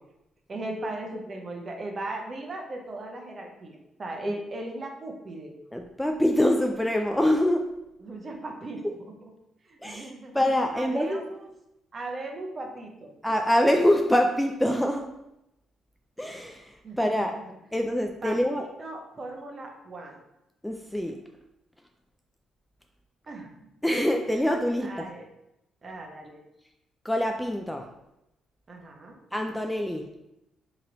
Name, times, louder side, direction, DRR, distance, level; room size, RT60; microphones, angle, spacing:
voice 1, 0.5-5.5 8.0-8.8 9.2-9.3 9.6-10.4 10.7-11.5 11.9-13.1 16.8-17.3 18.2-20.2 23.3-23.7 24.8-25.3 25.8-26.4 28.7-29.2, right 2 dB, 40° right, 2 dB, 0.7 m, -38 dB
voice 2, 5.7-7.7 9.8-11.2 13.2-15.1 16.2-17.4 17.7-18.6 20.6-21.2 23.8-25.0 27.0-27.9 29.3-30.1, left 1 dB, 5° left, 3 dB, 0.3 m, -25 dB
3.0 x 2.9 x 3.8 m, 0.87 s
cardioid pair, 90°, 0 cm